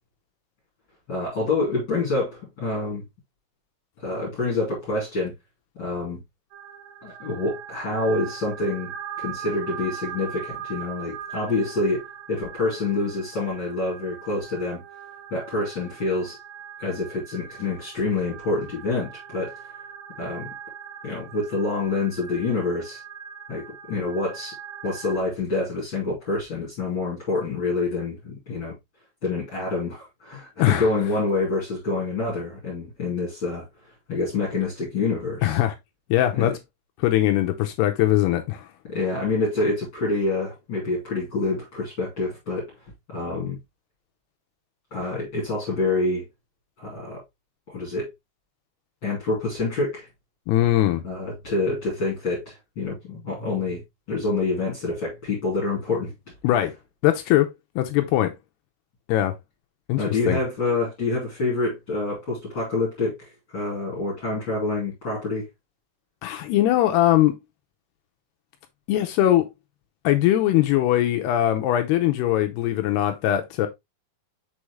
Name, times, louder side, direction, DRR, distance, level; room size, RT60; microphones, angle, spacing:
voice 1, 1.1-3.0 4.0-5.3 5.8-6.2 7.0-8.9 9.2-14.8 15.3-16.4 16.8-19.5 20.2-20.5 21.0-23.0 23.5-24.5 24.8-28.7 29.2-33.6 34.1-35.6 36.3-36.5 38.9-42.7 43.1-43.6 44.9-46.2 46.8-47.2 47.7-48.1 49.0-50.1 51.0-53.8 54.1-56.1 60.0-65.5, left 3 dB, 30° left, 3.0 m, -27 dB
sound 1, 6.5-25.2, right 8 dB, 75° right, 1.8 m, -40 dB
voice 2, 35.4-35.7 36.1-36.6 37.0-38.7 50.5-51.0 56.4-56.7 57.0-57.5 57.8-58.3 59.1-59.4 59.9-60.4 66.2-67.3 68.9-69.5 70.0-73.7, left 13 dB, 80° left, 2.5 m, -21 dB
6.3 x 5.0 x 3.1 m
omnidirectional pair, 5.1 m